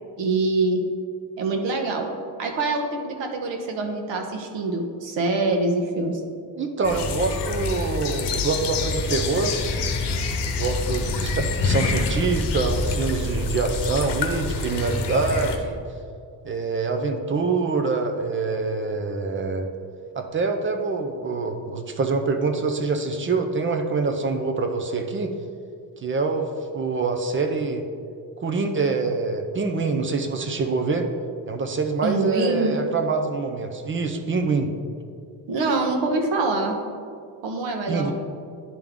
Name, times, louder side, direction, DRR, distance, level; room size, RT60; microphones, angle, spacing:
voice 1, 0.2-0.8 1.4-2.1 2.4-6.2 32.0-32.7 35.5-36.7 37.4-38.1, right 3 dB, 80° right, 3 dB, 1.0 m, -24 dB
voice 2, 6.6-9.5 10.6-15.8 16.4-19.7 20.2-25.3 26.0-26.5 26.7-27.8 28.4-31.1 31.4-34.7 37.9-38.1, right 4 dB, 30° right, 5 dB, 0.4 m, -25 dB
sound 1, 6.8-15.6, left 3 dB, 65° left, 0.9 m, -26 dB
10.5 x 3.6 x 3.5 m, 2.3 s
cardioid pair, 145°, 44 cm